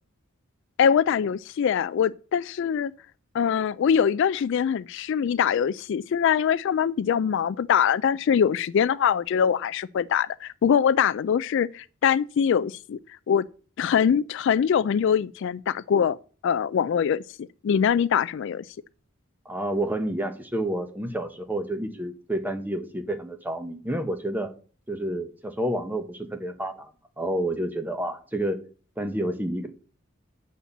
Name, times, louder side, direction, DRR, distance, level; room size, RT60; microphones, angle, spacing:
voice 1, 0.8-2.9 3.3-13.0 13.3-13.5 13.8-16.2 16.4-18.6, left 7 dB, 60° left, 0.3 m, -23 dB
voice 2, 19.4-24.5 24.9-26.9 27.2-28.6 29.0-29.7, right 1 dB, 10° right, 1.1 m, -29 dB
8.6 x 4.2 x 7.1 m
head